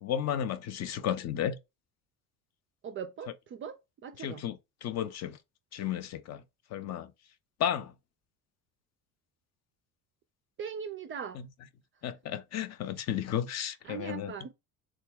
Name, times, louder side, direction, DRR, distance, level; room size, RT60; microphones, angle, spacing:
voice 1, 0.0-1.6 4.2-5.4 5.7-6.4 6.7-7.1 7.6-7.9 12.0-14.3, left 10 dB, 40° left, 0.5 m, -33 dB
voice 2, 2.8-4.4 10.6-11.4 13.8-14.5, right 7 dB, 30° right, 0.3 m, -40 dB
3.5 x 2.1 x 3.5 m
hypercardioid pair, 60°, 45 cm